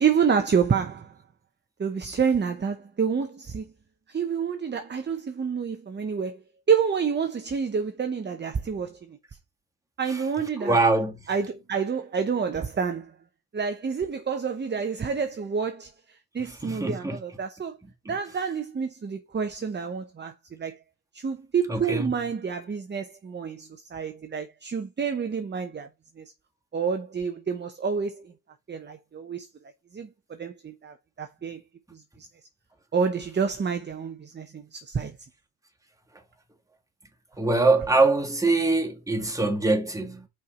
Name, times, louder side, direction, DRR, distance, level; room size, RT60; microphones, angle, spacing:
voice 1, 0.0-1.1 1.8-3.7 4.1-6.4 6.7-9.2 10.0-10.8 11.3-13.1 13.5-17.8 18.1-20.8 21.1-25.9 26.2-26.3 26.7-28.3 28.7-29.5 29.9-31.6 31.9-32.0 32.9-35.2, right 6 dB, 25° right, 0.8 m, -28 dB
voice 2, 10.6-11.3 16.4-17.2 18.1-18.2 21.7-22.1 37.4-40.3, right 3 dB, 10° right, 1.9 m, -23 dB
5.7 x 4.6 x 4.9 m
cardioid pair, 85°, 41 cm